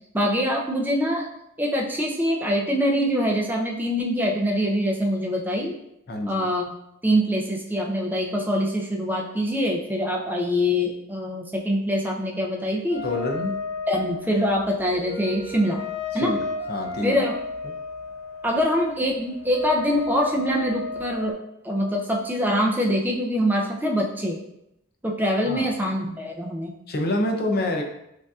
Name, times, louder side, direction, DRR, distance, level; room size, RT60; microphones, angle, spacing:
voice 1, 0.1-1.3 1.6-5.7 6.3-6.7 7.0-13.0 13.9-15.8 16.1-16.4 17.0-17.3 18.4-21.4 21.6-24.4 25.0-26.7, equal, 10° right, -1 dB, 0.5 m, -24 dB
voice 2, 6.1-6.5 13.0-13.6 16.1-17.3 17.6-17.7 25.5-25.7 26.9-27.8, left 2 dB, 45° left, 3 dB, 0.5 m, -27 dB
sound 1, 12.9-21.3, left 3 dB, 75° left, 1.5 m, -33 dB
6.3 x 2.6 x 2.4 m, 0.83 s
head